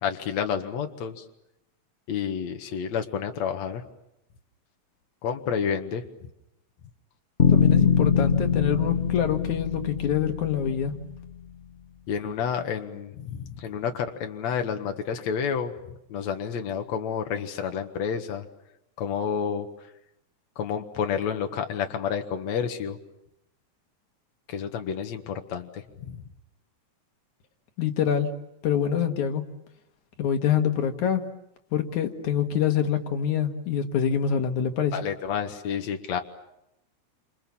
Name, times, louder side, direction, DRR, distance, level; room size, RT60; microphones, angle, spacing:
voice 1, 0.0-1.2 2.1-3.8 5.2-6.0 12.1-15.7 16.1-18.5 19.0-19.7 20.6-23.0 24.5-26.2 34.9-36.2, left 7 dB, 70° left, 5 dB, 2.8 m, -30 dB
sound 1, 7.4-11.5, left 6 dB, 45° left, 0.7 m, -23 dB
voice 2, 7.5-10.9 27.8-28.3 28.6-29.4 30.2-31.2 31.7-35.0, left 8 dB, 85° left, 6 dB, 3.1 m, -25 dB
29.0 x 27.0 x 7.2 m, 0.84 s
omnidirectional pair, 3.4 m